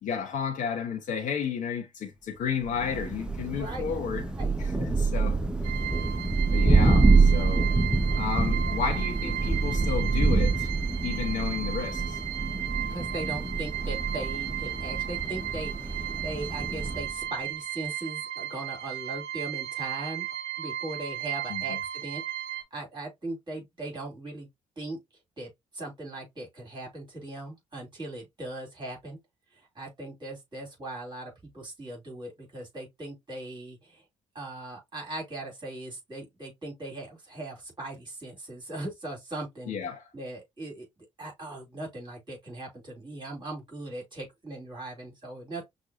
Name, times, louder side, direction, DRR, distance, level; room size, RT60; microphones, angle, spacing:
voice 1, 0.0-4.3 4.6-5.5 6.5-7.7 8.2-10.7 11.0-12.2 21.5-21.8 39.7-40.1, left 7 dB, 50° left, 0.9 m, -32 dB
Thunder, 2.6-17.2, right 3 dB, 5° right, 0.6 m, -26 dB
voice 2, 3.5-3.8 4.4-4.6 12.9-20.3 20.6-22.2 22.5-24.5 24.7-25.0 25.4-29.2 29.5-34.0 34.3-39.7 40.1-45.6, right 2 dB, 30° right, 3.2 m, -39 dB
sound 1, 5.6-22.6, right 12 dB, 65° right, 0.4 m, -35 dB
6.1 x 2.4 x 2.7 m
figure-of-eight pair, 45°, 16 cm